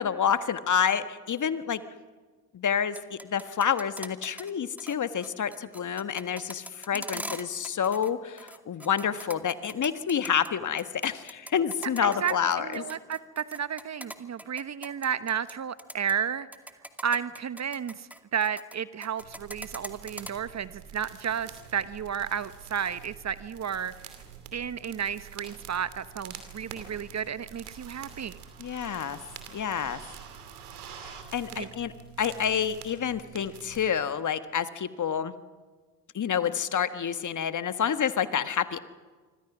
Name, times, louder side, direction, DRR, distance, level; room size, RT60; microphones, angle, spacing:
voice 1, 0.0-1.8 2.5-12.8 28.6-29.2 29.5-30.0 31.0-31.9 32.2-35.3 36.1-38.8, left 8 dB, 40° left, 11 dB, 1.5 m, -28 dB
sound 1, 2.8-4.5 4.8-5.0 5.2-8.1 8.4-10.5 10.8-15.5 15.8-16.1 16.5-18.8 19.0-20.3, right 1 dB, 5° right, 2.4 m, -41 dB
voice 2, 6.9-7.3 12.0-16.5 17.0-24.1 24.5-28.4 31.6-31.7, right 8 dB, 35° right, 15 dB, 1.1 m, -32 dB
sound 2, 19.2-33.8, right 8 dB, 85° right, 2.8 m, -47 dB
26.5 x 25.0 x 6.1 m, 1.4 s
hypercardioid pair, 50°, 44 cm